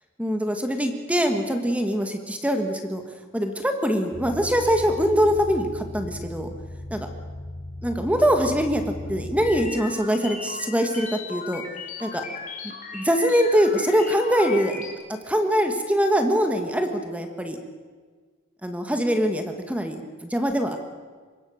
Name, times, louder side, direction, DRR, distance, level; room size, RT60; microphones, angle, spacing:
voice 1, 0.2-3.0 3.3-6.5 6.9-7.1 7.8-8.8 9.1-11.6 12.0-12.2 12.9-14.8 15.3-17.6 18.6-20.8, equal, 5° right, 5 dB, 1.7 m, -23 dB
sound 1, 4.1-9.7, left 1 dB, 55° left, 4.4 m, -37 dB
sound 2, 9.4-14.9, left 5 dB, 35° left, 3.3 m, -37 dB
25.0 x 21.0 x 6.6 m, 1.5 s
head